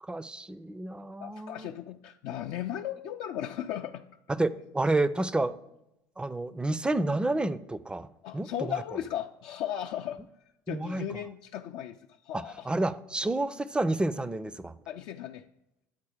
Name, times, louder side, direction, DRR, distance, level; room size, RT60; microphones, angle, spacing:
voice 1, 0.0-1.7 4.3-5.6 6.2-8.1 8.3-8.8 10.7-11.0 12.3-14.7, right 2 dB, 10° right, 16 dB, 0.4 m, -30 dB
voice 2, 1.2-4.0 8.2-10.2 10.7-12.0 12.2-12.7 14.9-15.5, left 10 dB, 65° left, 4 dB, 0.4 m, -36 dB
8.6 x 4.2 x 4.9 m, 0.89 s
hypercardioid pair, 70°, 9 cm